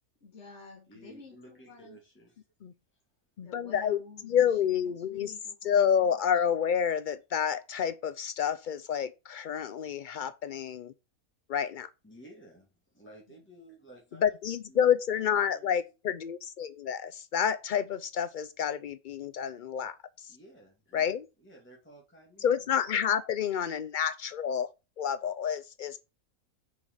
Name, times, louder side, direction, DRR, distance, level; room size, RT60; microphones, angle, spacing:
voice 1, 0.2-2.0 3.4-6.4, left 4 dB, 55° left, 2.1 m, -51 dB
voice 2, 0.9-2.4 2.9-3.0 12.0-15.7 20.3-22.7 23.8-23.9, right 1 dB, 10° left, 2.3 m, -54 dB
voice 3, 3.4-4.0 4.3-5.3 5.6-10.9 11.5-11.9 14.2-20.4 20.9-21.3 22.4-24.7 25.0-26.0, left 8 dB, 80° left, 0.4 m, -29 dB
6.7 x 5.4 x 6.7 m
omnidirectional pair, 1.5 m